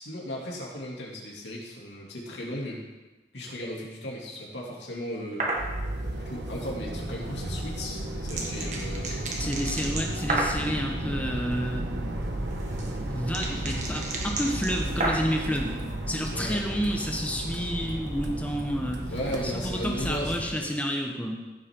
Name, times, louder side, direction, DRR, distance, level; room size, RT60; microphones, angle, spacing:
voice 1, 0.0-2.8 3.3-5.6 6.2-9.2 16.3-16.9 19.1-20.8, equal, 90° left, -3 dB, 2.8 m, -36 dB
sound 1, 5.4-5.7 7.6-10.7 12.2-15.4, right 2 dB, 45° right, 1.7 m, -31 dB
sound 2, 5.6-20.5, right 1 dB, 90° right, 1.4 m, -33 dB
voice 2, 9.0-11.9 13.1-15.8 16.1-19.0 19.4-21.3, equal, 10° left, 1 dB, 1.3 m, -30 dB
15.5 x 7.6 x 3.8 m, 1.2 s
head